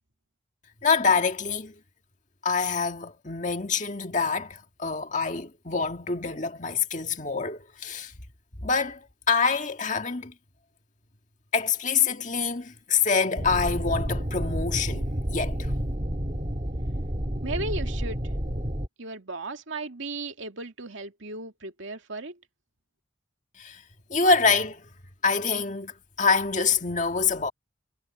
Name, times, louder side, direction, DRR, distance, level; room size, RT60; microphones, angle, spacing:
voice 1, 0.8-1.7 2.4-8.1 8.6-10.3 11.5-15.7 23.6-23.8 24.1-24.8 25.2-27.5, left 5 dB, 40° left, 1.8 m, -26 dB
sound 1, 13.4-18.9, equal, 35° right, 1.9 m, -30 dB
voice 2, 17.4-18.2 19.0-22.4, right 3 dB, 80° right, 2.3 m, -36 dB
head